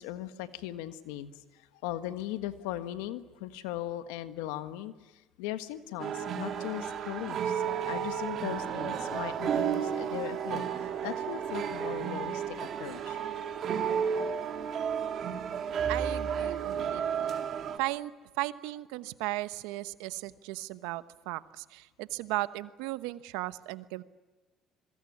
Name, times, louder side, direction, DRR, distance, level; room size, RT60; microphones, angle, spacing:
voice 1, 0.0-13.2, left 13 dB, 85° left, 11 dB, 1.5 m, -39 dB
sound 1, 6.0-17.8, right 8 dB, 55° right, 3.2 m, -32 dB
voice 2, 15.9-17.4 17.8-24.0, right 18 dB, 85° right, 14 dB, 1.1 m, -36 dB
25.5 x 22.5 x 9.8 m, 1.2 s
supercardioid pair, 75°, 0 cm